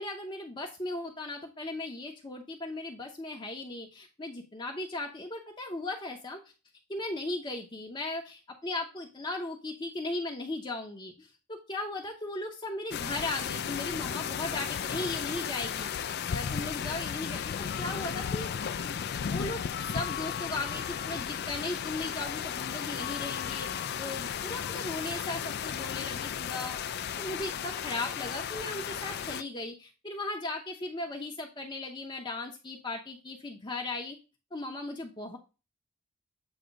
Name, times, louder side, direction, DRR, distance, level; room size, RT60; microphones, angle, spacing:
voice 1, 0.0-6.4 6.9-34.2 34.5-35.4, left 2 dB, 20° left, 2 dB, 0.7 m, -37 dB
sound 1, 12.9-29.4, left 8 dB, 45° left, 0.3 m, -34 dB
7.9 x 2.8 x 5.1 m, 0.30 s
head